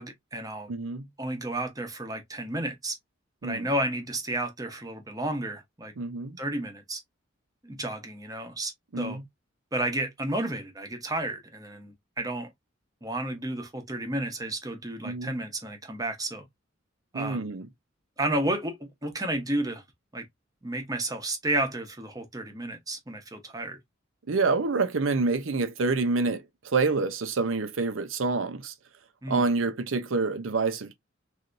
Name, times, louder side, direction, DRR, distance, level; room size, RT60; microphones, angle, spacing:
voice 1, 0.0-0.7 1.2-3.0 3.4-5.9 6.4-7.0 7.6-9.2 9.7-12.5 13.0-16.5 17.1-17.5 18.2-19.8 20.1-20.2 20.6-23.8 29.2-29.4, right 1 dB, 20° right, 0.8 m, -32 dB
voice 2, 0.7-1.1 3.4-3.7 6.0-6.4 8.9-9.2 15.0-15.4 17.1-17.7 24.3-28.7 29.3-30.9, right 3 dB, 80° right, 0.7 m, -27 dB
3.3 x 2.7 x 2.5 m
head